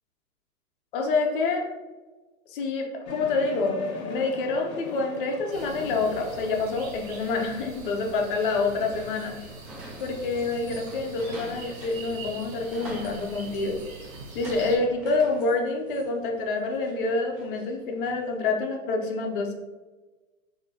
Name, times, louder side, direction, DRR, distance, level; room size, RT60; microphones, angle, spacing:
voice 1, 0.9-1.6 2.5-9.3 10.0-13.8 14.3-19.5, left 3 dB, 40° left, 2 dB, 0.6 m, -27 dB
sound 1, 3.1-9.4, left 4 dB, 85° left, 0.7 m, -39 dB
sound 2, 5.5-14.8, right 3 dB, 80° right, 1.2 m, -43 dB
sound 3, 7.9-18.3, right 1 dB, 35° right, 1.3 m, -46 dB
3.7 x 2.7 x 2.8 m, 1.2 s
hypercardioid pair, 130°, 41 cm